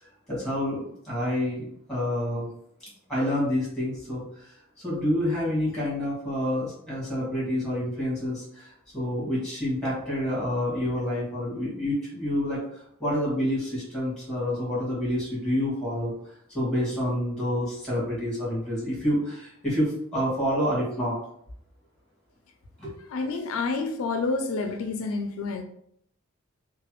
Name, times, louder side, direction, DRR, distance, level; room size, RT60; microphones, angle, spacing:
voice 1, 0.3-2.5 3.1-16.1 16.5-21.2 22.8-22.9, equal, 5° left, -7 dB, 1.5 m, -28 dB
voice 2, 23.1-25.6, left 3 dB, 85° left, 6 dB, 0.4 m, -28 dB
3.1 x 2.2 x 2.9 m, 0.70 s
head